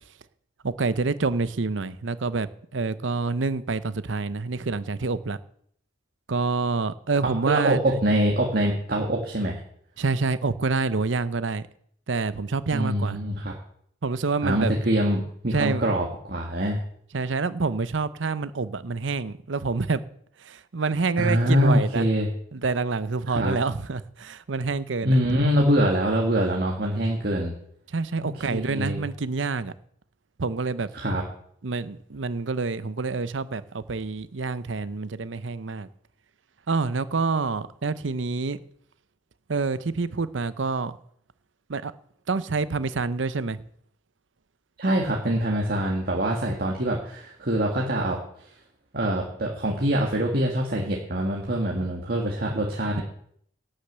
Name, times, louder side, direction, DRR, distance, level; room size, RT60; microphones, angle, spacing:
voice 1, 0.6-2.5 2.7-5.4 6.3-7.8 10.0-11.6 12.1-13.2 14.0-14.7 15.5-15.8 17.1-20.0 20.4-22.1 22.5-25.2 27.9-29.7 30.4-30.9 31.6-35.9 36.7-38.6 39.5-40.9 41.7-41.9 42.3-43.6, right 4 dB, 80° right, 0.7 m, -27 dB
voice 2, 7.4-9.6 12.7-13.5 14.4-16.8 21.2-22.3 23.3-23.5 25.0-27.5 28.2-29.0 30.9-31.2 44.8-48.2 48.9-53.0, equal, 55° right, 1.8 m, -24 dB
11.5 x 6.5 x 8.0 m
head